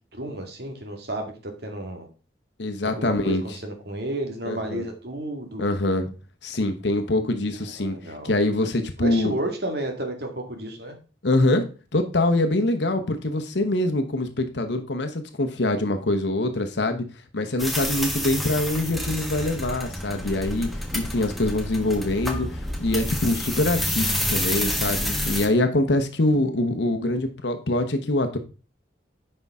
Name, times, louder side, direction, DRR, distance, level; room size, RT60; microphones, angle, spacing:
voice 1, 0.2-2.1 2.8-5.7 7.8-8.3 9.0-11.0, right 1 dB, 55° right, 4 dB, 1.9 m, -32 dB
voice 2, 2.6-3.6 4.5-4.8 5.6-6.1 6.4-9.4 11.2-11.7 11.9-17.0 17.3-28.4, left 1 dB, 65° left, 6 dB, 1.0 m, -24 dB
sound 1, 17.6-25.5, left 1 dB, ahead, 1.1 m, -28 dB
9.6 x 5.5 x 3.6 m, 0.34 s
head